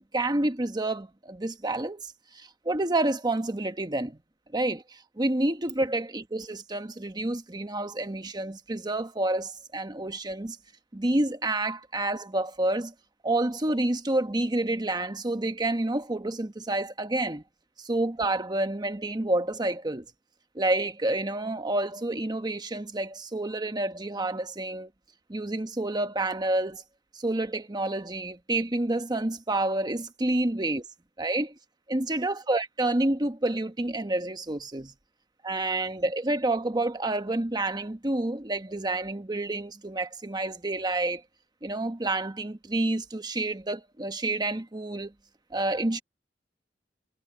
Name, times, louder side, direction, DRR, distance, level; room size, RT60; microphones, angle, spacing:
voice 1, 0.0-4.2 4.5-10.6 10.9-12.9 13.2-17.4 17.8-20.0 20.5-24.9 25.3-26.8 27.1-30.9 31.2-31.5 31.9-34.9 35.4-41.2 41.6-45.1 45.5-46.0, right 2 dB, 25° right, 1.1 m, -29 dB
head